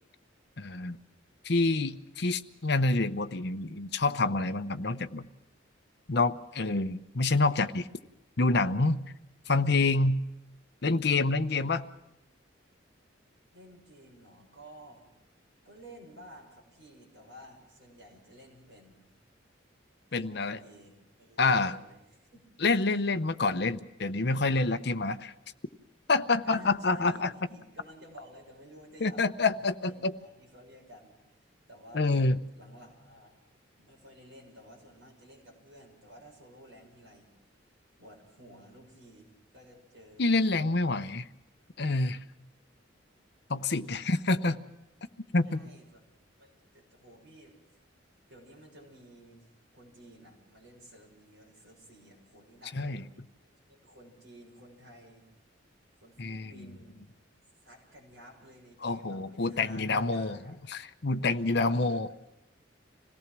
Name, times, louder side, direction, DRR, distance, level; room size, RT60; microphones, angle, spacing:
voice 1, 0.6-1.0 1.4-5.3 6.1-7.9 8.4-9.0 9.5-10.2 10.8-11.8 20.1-20.6 21.4-21.7 22.6-25.3 26.1-27.3 29.0-30.1 31.9-32.4 40.2-41.3 41.8-42.2 43.5-44.6 45.3-45.6 52.7-53.0 56.2-56.5 58.8-60.4 60.7-62.1, left 3 dB, 55° left, 9 dB, 0.8 m, -27 dB
voice 2, 13.5-15.0 15.6-19.1 20.1-22.6 25.0-25.3 26.4-31.2 31.7-32.2 32.6-33.4 33.8-37.3 38.0-41.0 43.8-44.2 45.4-46.1 46.4-47.6 48.3-53.2 53.7-55.3 56.0-57.0 57.6-60.6 61.6-62.1, equal, 65° right, 0 dB, 7.0 m, -53 dB
26.0 x 18.0 x 6.1 m, 0.89 s
head